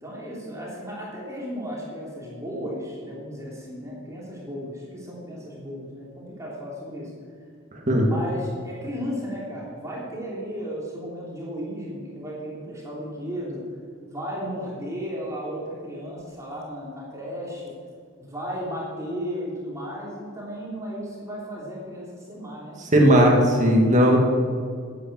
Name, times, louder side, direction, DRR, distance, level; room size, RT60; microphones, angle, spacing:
voice 1, 0.0-7.1 8.0-13.6 14.1-17.7 18.2-22.8, equal, 15° right, -5 dB, 2.9 m, -34 dB
voice 2, 7.7-8.1 22.8-24.2, equal, 40° right, 0 dB, 2.1 m, -17 dB
11.5 x 8.7 x 7.8 m, 2.1 s
head